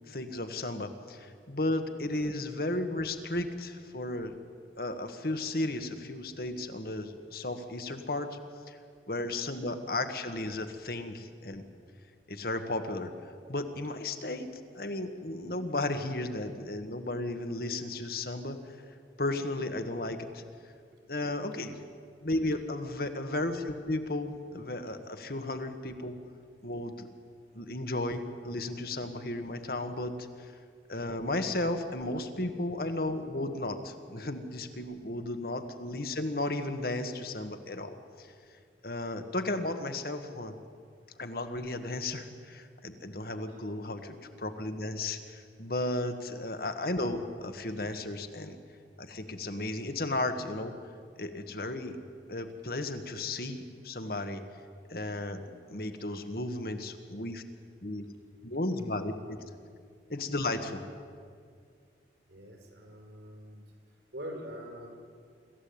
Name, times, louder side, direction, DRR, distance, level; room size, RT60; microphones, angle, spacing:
voice 1, 0.1-4.3 4.8-8.4 8.7-8.8 9.1-11.7 12.3-13.1 13.5-18.6 19.2-20.4 21.1-21.8 22.2-26.2 26.6-27.1 27.5-30.5 30.9-38.3 38.8-40.5 41.2-48.6 49.0-50.7 51.2-52.0 52.3-54.4 54.9-57.4 57.8-58.0 58.4-59.4 60.1-60.8, left 2 dB, 55° left, 7 dB, 1.5 m, -34 dB
voice 2, 62.3-63.6 64.1-64.9, equal, 70° right, 1 dB, 5.2 m, -43 dB
25.0 x 14.5 x 8.7 m, 2.2 s
head